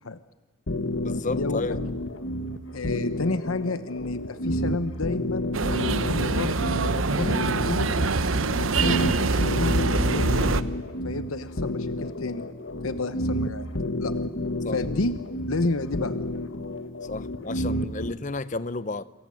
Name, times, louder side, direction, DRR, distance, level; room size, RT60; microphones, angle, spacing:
sound 1, 0.7-18.1, left 1 dB, 65° left, 1.8 m, -30 dB
voice 1, 1.0-1.8 14.6-14.8 17.0-19.0, left 3 dB, 35° left, 15 dB, 0.8 m, -32 dB
voice 2, 2.7-5.5 6.0-7.9 8.5-10.5 11.0-12.5 12.8-13.7 14.0-14.1 14.7-15.1 15.4-16.1, left 3 dB, 85° left, 11 dB, 1.1 m, -31 dB
sound 2, 5.5-10.6, right 3 dB, 70° right, 1.0 m, -24 dB
27.5 x 23.5 x 7.8 m, 1.2 s
head